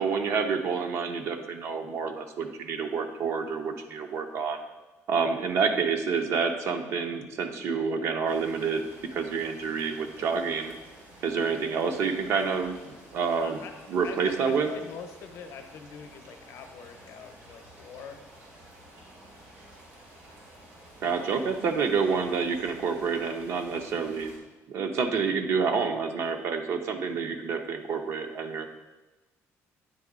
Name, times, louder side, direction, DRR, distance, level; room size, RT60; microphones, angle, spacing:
voice 1, 0.0-4.6 5.1-8.8 9.1-10.7 11.2-12.8 13.1-13.6 13.9-14.7 21.0-24.3 24.7-28.7, right 5 dB, 55° right, 6 dB, 0.6 m, -28 dB
sound 1, 8.3-24.4, right 1 dB, 80° right, 1.9 m, -51 dB
voice 2, 13.4-13.7 14.0-18.2, left 6 dB, 60° left, 6 dB, 0.6 m, -43 dB
8.9 x 3.9 x 3.6 m, 1.1 s
cardioid pair, 180°, 6 cm